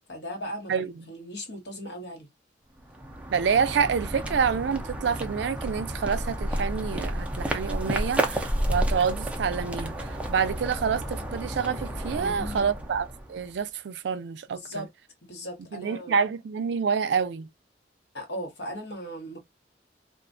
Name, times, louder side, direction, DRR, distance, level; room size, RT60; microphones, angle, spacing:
voice 1, 0.1-0.7 1.1-2.3 12.1-12.7 14.5-14.9 15.2-16.2 18.1-19.4, equal, 70° left, 1.1 m, -37 dB
sound 1, 2.8-13.5, right 1 dB, 5° right, 0.4 m, -31 dB
voice 2, 3.3-14.8 15.7-17.5, right 6 dB, 75° right, 0.4 m, -27 dB
2.3 x 2.2 x 2.4 m
head